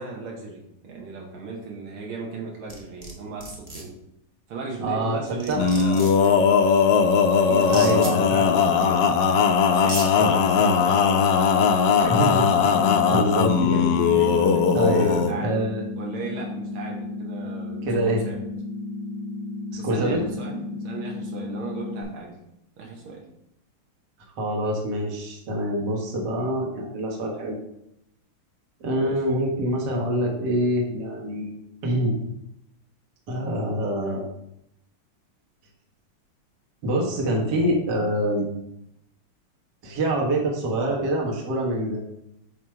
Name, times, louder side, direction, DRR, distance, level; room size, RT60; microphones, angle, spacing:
voice 1, 0.0-4.0 4.5-6.7 7.4-9.1 9.7-11.3 11.8-12.2 13.7-18.4 19.8-22.4 22.8-23.3 29.0-29.2, right 3 dB, 80° right, -1 dB, 1.9 m, -37 dB
sound 1, 2.7-3.1 3.4-3.8 5.0-5.1 5.4-6.3 7.6-8.1 9.2-9.3 9.7-10.1, right 2 dB, 35° right, 0.5 m, -34 dB
voice 2, 4.8-5.6 7.7-8.6 10.2-10.7 12.0-12.4 12.8-13.8 14.7-15.8 17.8-18.2 19.7-20.2 24.4-27.6 28.8-31.6 31.8-32.1 33.3-34.2 36.8-38.5 39.8-42.0, right 1 dB, 55° right, -1 dB, 1.7 m, -25 dB
Male singing, 5.5-15.3, left 6 dB, 75° left, 1.0 m, -19 dB
sound 2, 12.0-22.0, left 3 dB, 35° left, 2.1 m, -33 dB
7.5 x 2.8 x 4.6 m, 0.80 s
omnidirectional pair, 2.4 m